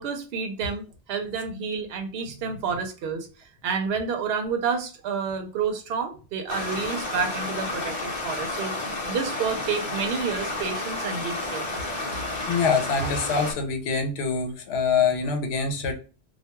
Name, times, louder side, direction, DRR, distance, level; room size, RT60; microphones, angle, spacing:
voice 1, 0.0-3.3 3.6-11.7, right 6 dB, 75° right, 0.8 m, -29 dB
Stream, 6.5-13.5, left 2 dB, 40° left, 0.8 m, -31 dB
voice 2, 12.5-15.9, left 5 dB, 80° left, 0.9 m, -24 dB
2.3 x 2.2 x 2.9 m
omnidirectional pair, 1.1 m